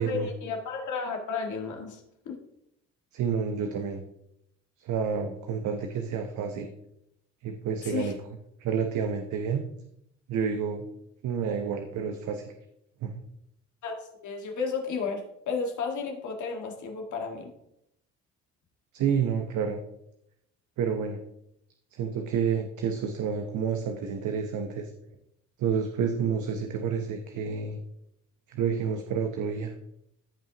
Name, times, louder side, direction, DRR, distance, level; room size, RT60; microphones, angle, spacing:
voice 1, 0.0-2.4 7.8-8.2 13.8-17.5, left 5 dB, 75° left, 1 dB, 1.8 m, -33 dB
voice 2, 3.1-4.0 4.8-6.7 7.4-8.1 8.6-9.6 10.3-10.9 11.2-12.5 13.0-13.2 18.9-19.8 20.8-21.2 21.9-24.9 25.6-27.8 28.5-29.7, right 6 dB, 75° right, 5 dB, 0.9 m, -29 dB
14.0 x 5.5 x 2.9 m, 0.80 s
cardioid pair, 90°, 30 cm